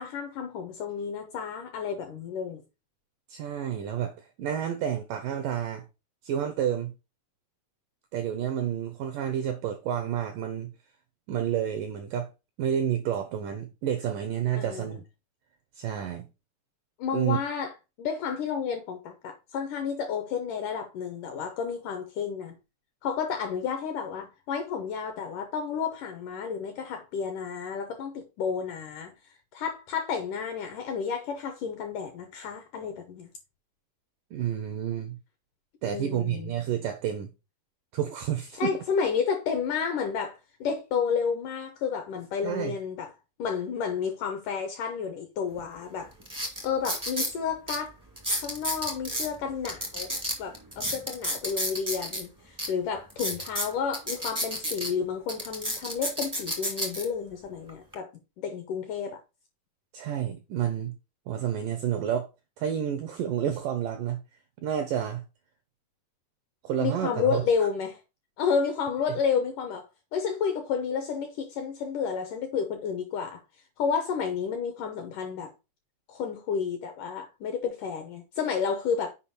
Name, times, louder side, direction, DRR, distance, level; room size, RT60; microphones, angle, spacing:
voice 1, 0.0-2.6 14.6-14.9 17.0-17.7 18.0-22.5 23.0-29.1 29.5-33.3 35.9-36.5 38.6-43.1 43.4-46.1 46.6-48.0 48.4-50.1 50.4-58.1 58.4-59.2 66.8-68.0 68.4-69.9 70.1-73.4 73.8-75.5 76.1-79.1, left 6 dB, 75° left, 1.9 m, -31 dB
voice 2, 3.3-5.8 6.2-6.9 8.1-10.7 11.3-12.3 12.6-15.0 15.8-16.3 17.1-17.4 34.3-35.2 35.8-37.3 37.9-38.8 42.4-42.8 59.9-60.9 61.3-62.3 62.6-64.2 64.6-65.2 66.6-67.4, right 9 dB, 85° right, 1.9 m, -30 dB
sound 1, 45.6-45.7 46.2-47.3 47.7-47.8 48.1-49.3 49.6-52.2 52.6-52.7 53.1-54.9 55.3-57.0 57.7-57.9, equal, 25° right, 0.4 m, -31 dB
7.3 x 5.0 x 4.2 m
omnidirectional pair, 4.7 m